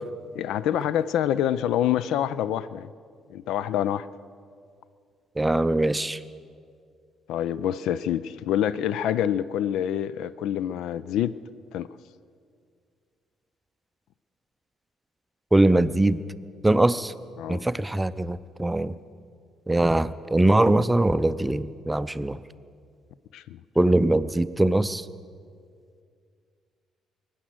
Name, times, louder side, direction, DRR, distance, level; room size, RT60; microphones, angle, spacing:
voice 1, 0.3-2.9 3.3-4.1 7.3-11.4 11.7-11.9 17.4-17.7 23.3-23.6, left 10 dB, 60° left, 18 dB, 0.3 m, -26 dB
voice 2, 5.4-6.2 15.5-16.2 16.6-17.1 17.5-18.9 19.7-22.4 23.8-25.0, right 1 dB, 10° right, 15 dB, 0.6 m, -22 dB
23.0 x 10.0 x 6.3 m, 2.2 s
figure-of-eight pair, 45°, 0 cm